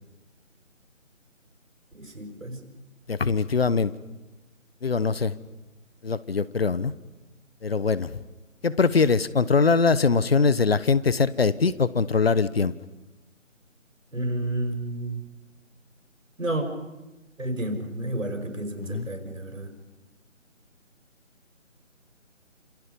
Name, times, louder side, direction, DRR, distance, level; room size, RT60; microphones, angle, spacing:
voice 1, 1.9-2.6 14.1-15.2 16.4-16.7 17.4-19.7, right 1 dB, 75° right, 5 dB, 5.5 m, -31 dB
voice 2, 3.1-3.9 4.8-5.3 6.0-6.9 7.6-8.1 8.6-12.7 18.9-19.1, left 4 dB, 50° left, 18 dB, 1.0 m, -22 dB
27.5 x 27.0 x 5.3 m, 1.1 s
figure-of-eight pair, 160°, 39 cm